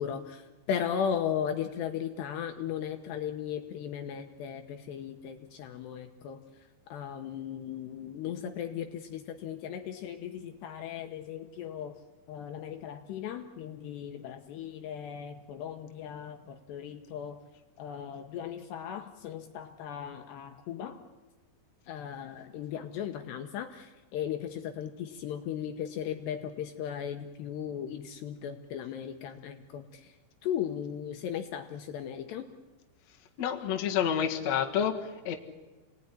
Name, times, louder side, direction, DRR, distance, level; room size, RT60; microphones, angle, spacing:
voice 1, 0.0-6.4 6.9-11.9 12.3-17.4 17.8-21.0 21.9-30.2 30.4-32.5, left 8 dB, 70° left, 6 dB, 2.9 m, -37 dB
voice 2, 33.4-35.3, left 8 dB, 50° left, 2 dB, 2.1 m, -29 dB
29.0 x 19.0 x 10.0 m, 1.2 s
omnidirectional pair, 5.6 m